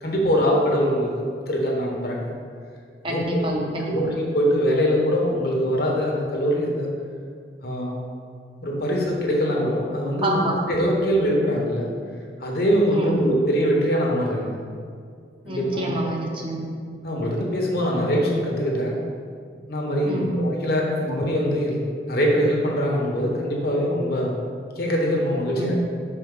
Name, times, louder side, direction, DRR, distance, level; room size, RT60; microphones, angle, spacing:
voice 1, 0.0-2.3 3.1-3.6 3.9-6.9 7.6-8.0 8.6-11.9 12.4-14.6 15.5-16.0 17.0-19.0 19.7-21.8 22.1-24.3 24.8-25.8, equal, 55° left, -1 dB, 1.1 m, -23 dB
voice 2, 3.0-4.1 10.2-10.5 12.9-13.2 15.4-16.7 20.0-20.3 25.6-25.8, right 1 dB, 30° right, -1 dB, 0.8 m, -27 dB
6.4 x 4.6 x 3.8 m, 2.2 s
head